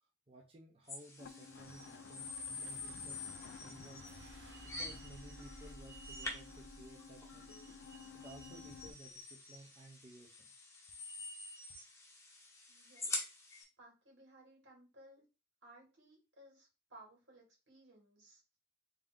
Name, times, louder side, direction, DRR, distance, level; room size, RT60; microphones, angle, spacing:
voice 1, 0.3-3.3 3.6-4.0 4.6-7.6 8.1-10.5, right 2 dB, 30° right, 1 dB, 0.6 m, -57 dB
sound 1, 0.9-13.6, left 2 dB, 15° left, 0.9 m, -47 dB
sound 2, 1.2-8.9, left 5 dB, 70° left, 0.4 m, -54 dB
sound 3, 2.5-8.8, right 1 dB, 60° right, 0.8 m, -58 dB
voice 2, 12.7-13.3 13.8-15.2 15.6-18.4, right 1 dB, 90° right, -2 dB, 2.3 m, -60 dB
3.6 x 2.8 x 3.6 m, 0.30 s
head